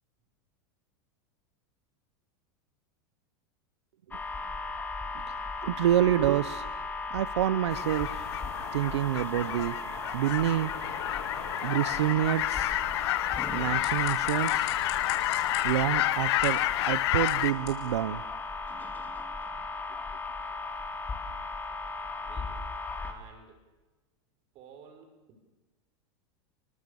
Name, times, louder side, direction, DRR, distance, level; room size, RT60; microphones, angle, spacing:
sound 1, 4.1-23.1, left 3 dB, 10° left, 2.4 m, -37 dB
voice 1, 5.3-6.7 7.1-8.3 8.7-9.8 10.1-10.7 11.6-12.8 13.5-14.7 15.6-16.6 16.9-18.2, right 12 dB, 90° right, 15 dB, 0.9 m, -27 dB
sound 2, 7.7-17.5, left 16 dB, 70° left, 0.9 m, -30 dB
sound 3, 13.5-18.8, left 10 dB, 45° left, 5.9 m, -48 dB
voice 2, 22.2-23.6 24.5-25.4, right 6 dB, 45° right, 6 dB, 6.3 m, -54 dB
28.5 x 24.0 x 7.1 m, 1.2 s
supercardioid pair, 140°, 14 cm